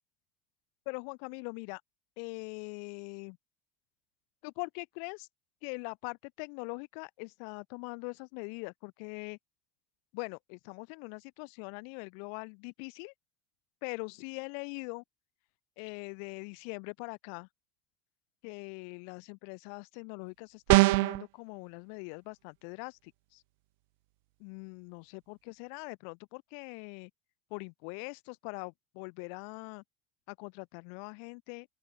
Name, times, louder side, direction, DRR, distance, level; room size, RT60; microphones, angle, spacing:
voice 1, 0.8-1.8 2.2-3.4 4.4-5.3 5.6-9.4 10.1-13.1 13.8-15.0 15.8-17.5 18.4-23.4 24.4-27.1 27.5-29.8 30.3-31.7, left 40 dB or more, 75° left, 6.3 m, -42 dB
sound 1, 20.7-21.2, right 25 dB, 80° right, 0.4 m, -21 dB
open air
supercardioid pair, 120°, 0 cm